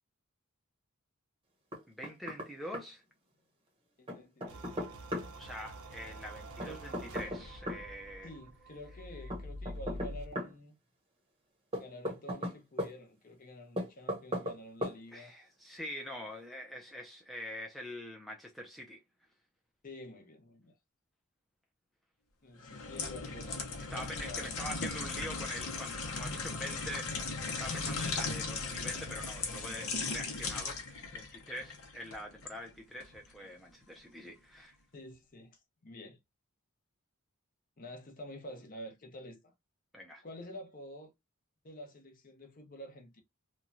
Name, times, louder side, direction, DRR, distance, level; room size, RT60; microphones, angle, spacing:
Knock, 1.7-2.5 2.7-2.8 4.1-5.3 6.6-7.8 9.3-10.5 11.7-12.9 13.8-14.6 14.8-15.0, left 1 dB, 25° right, 0.8 m, -37 dB
voice 1, 1.9-3.0 5.4-8.3 15.1-19.0 23.9-34.8 39.9-40.2, equal, ahead, 0.4 m, -44 dB
voice 2, 4.0-4.7 6.6-6.9 8.2-10.8 11.8-15.3 19.8-20.8 22.4-24.6 34.9-36.2 37.8-39.5 40.2-41.1 41.6-43.2, left 1 dB, 40° left, 0.7 m, -49 dB
sound 1, 4.5-10.4, equal, 90° right, 0.8 m, -46 dB
sound 2, 22.6-32.6 33.0-33.2, left 4 dB, 75° left, 0.8 m, -38 dB
3.0 x 2.3 x 2.5 m
head